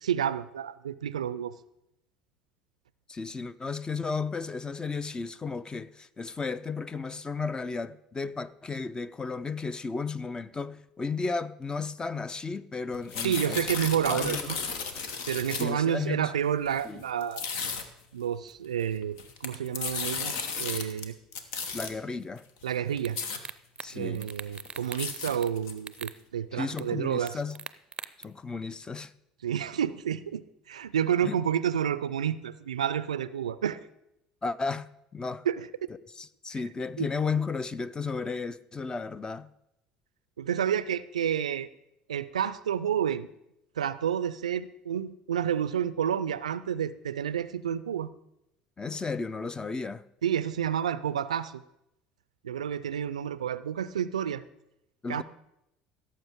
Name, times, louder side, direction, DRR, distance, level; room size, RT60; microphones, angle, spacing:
voice 1, 0.0-1.5 13.2-14.6 15.3-17.4 18.1-21.2 22.6-23.2 23.9-27.4 29.4-33.8 35.5-35.7 37.0-37.1 40.4-41.7 42.1-43.3 43.8-48.1 50.2-51.6 52.4-54.4 55.1-55.2, right 9 dB, 85° right, 0.4 m, -30 dB
voice 2, 3.1-13.7 14.1-14.5 15.5-16.3 16.8-17.0 21.7-22.4 23.8-24.3 26.5-27.6 28.2-29.1 31.2-31.4 34.4-35.5 36.2-39.5 48.8-50.0 55.0-55.2, left 4 dB, 20° left, 0.5 m, -34 dB
sound 1, 12.9-15.9 16.6-16.8 17.2-17.8 19.0-21.0 21.3-21.9 22.6-22.7 23.0-23.4 23.9-24.0 24.3-26.0, left 5 dB, 70° left, 1.1 m, -34 dB
sound 2, 23.0-23.1 23.4-23.9 24.1-25.5 25.8-26.2 26.8-26.9 27.3-28.2, right 6 dB, 25° right, 0.5 m, -40 dB
17.0 x 7.4 x 3.6 m
hypercardioid pair, 65°, 4 cm